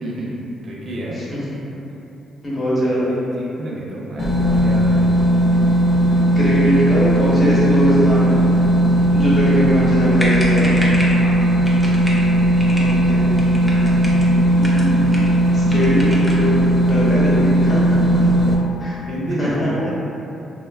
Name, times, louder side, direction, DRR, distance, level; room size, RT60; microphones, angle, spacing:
voice 1, 0.0-1.2 2.8-5.1 8.9-9.4 11.1-11.4 18.1-18.4 19.1-19.9, right 1 dB, 55° right, -4 dB, 0.5 m, -29 dB
voice 2, 2.4-3.2 6.3-8.4 9.1-10.7 12.7-13.3 14.5-16.6 16.8-18.0 18.8-19.0 19.4-19.7, equal, 35° left, -8 dB, 0.9 m, -21 dB
sound 1, 4.2-18.5, right 1 dB, 55° left, 0.4 m, -16 dB
sound 2, 10.2-11.2 11.6-12.2 12.6-12.9 13.3-14.3 14.6-15.4 15.7-16.5, equal, ahead, 0.5 m, -28 dB
3.1 x 2.1 x 2.2 m, 2.8 s
cardioid pair, 90°, 0 cm